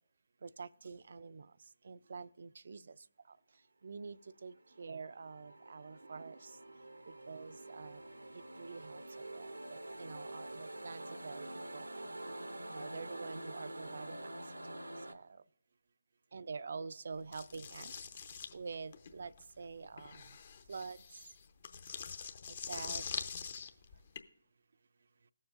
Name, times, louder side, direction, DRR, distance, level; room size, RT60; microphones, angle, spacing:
voice 1, 0.4-1.5 1.9-2.8 3.8-4.2 4.4-6.4 7.3-8.0 8.6-9.0 9.3-11.8 12.7-14.2 15.1-15.2 16.3-17.9 18.5-19.3 19.6-20.1 20.7-21.0 22.7-23.0, right 4 dB, 60° right, 0.3 m, -46 dB
sound 1, 4.4-15.1, right 1 dB, 85° right, 0.7 m, -47 dB
sound 2, 17.3-24.2, left 6 dB, 50° left, 0.7 m, -44 dB
19.5 x 7.1 x 2.5 m
figure-of-eight pair, 145°, 0 cm